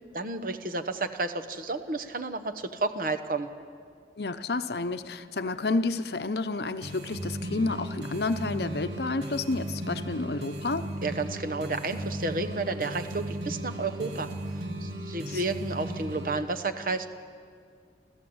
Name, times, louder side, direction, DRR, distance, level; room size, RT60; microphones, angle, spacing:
voice 1, 0.1-3.5 11.0-14.3 14.8-17.1, right 3 dB, 50° right, 8 dB, 1.0 m, -31 dB
voice 2, 4.2-10.9 15.3-15.4, left 3 dB, 65° left, 11 dB, 0.8 m, -30 dB
sound 1, 6.8-16.4, right 1 dB, 80° right, 2.5 m, -36 dB
27.5 x 14.5 x 8.0 m, 2.2 s
head